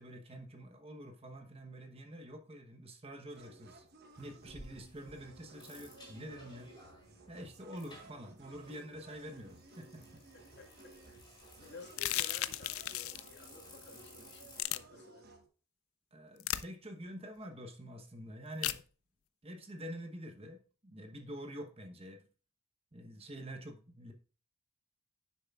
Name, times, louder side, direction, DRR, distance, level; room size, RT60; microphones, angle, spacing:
voice 1, 0.0-3.9 4.2-6.7 7.3-10.2 11.6-11.7 16.1-18.8 19.4-22.3 22.9-24.1, equal, 25° right, 1.0 m, -47 dB
sound 1, 3.3-15.5, right 3 dB, 45° right, 1.3 m, -57 dB
sound 2, 4.2-14.6, left 1 dB, 20° left, 4.0 m, -57 dB
voice 2, 10.3-15.3, left 3 dB, 55° left, 1.8 m, -55 dB
sound 3, 11.9-13.3 14.6-14.8 16.4-16.6 18.6-18.8, left 14 dB, 75° left, 0.4 m, -35 dB
9.9 x 6.7 x 2.4 m
head